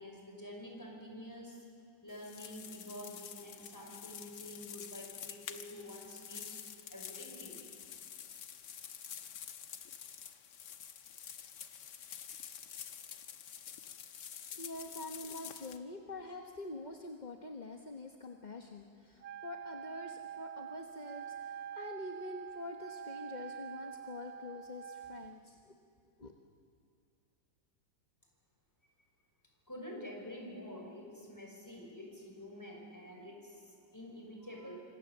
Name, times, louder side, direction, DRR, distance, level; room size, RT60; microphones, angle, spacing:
voice 1, 0.0-1.6 2.0-6.5 6.9-7.6 29.7-34.8, left 1 dB, 10° left, 0 dB, 5.6 m, -48 dB
sound 1, 2.1-15.8, left 8 dB, 65° left, 1.7 m, -48 dB
voice 2, 14.5-25.7 26.2-26.3, left 2 dB, 25° left, 2 dB, 1.1 m, -46 dB
Wind instrument woodwind instrument, 19.2-25.4, right 8 dB, 60° right, 1.0 m, -46 dB
27.0 x 25.5 x 7.4 m, 2.5 s
omnidirectional pair, 2.1 m